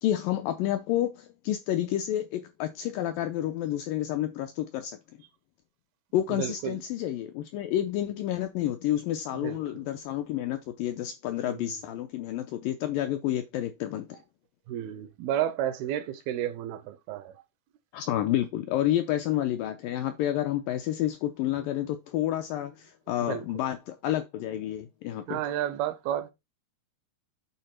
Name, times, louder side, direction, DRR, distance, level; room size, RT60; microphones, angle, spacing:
voice 1, 0.0-5.0 6.1-14.2 17.9-25.4, left 12 dB, 80° left, 2.0 m, -30 dB
voice 2, 6.3-6.8 9.4-9.6 11.4-11.6 14.7-17.3 23.3-23.7 25.3-26.3, right 11 dB, 80° right, 2.5 m, -31 dB
8.8 x 3.8 x 5.8 m
omnidirectional pair, 4.6 m